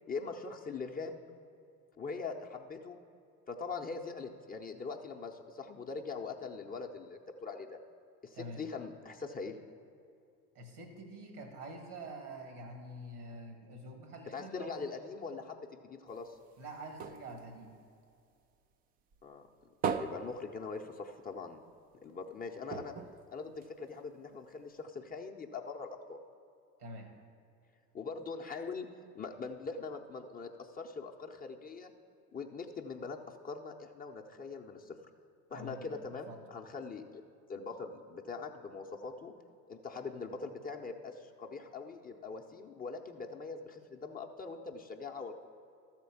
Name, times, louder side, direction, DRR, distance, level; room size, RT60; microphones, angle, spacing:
voice 1, 0.1-1.2 2.0-3.0 3.5-7.8 8.2-9.6 14.3-16.4 19.2-19.4 19.9-21.6 22.0-22.9 23.3-26.2 27.9-28.9 29.1-31.9 32.3-35.0 35.5-37.2 37.5-39.3 39.7-45.5, left 4 dB, 20° left, 2 dB, 0.6 m, -42 dB
voice 2, 10.5-14.8 16.6-17.7 26.8-27.1 35.5-35.9 36.3-36.4, right 1 dB, 85° right, 5 dB, 1.7 m, -46 dB
sound 1, 16.1-18.7 19.1-21.4 21.7-21.8 22.1-22.2 22.7-24.2 24.8-24.9, right 6 dB, 25° right, 0.3 m, -40 dB
13.0 x 4.4 x 7.0 m, 2.5 s
hypercardioid pair, 75°, 44 cm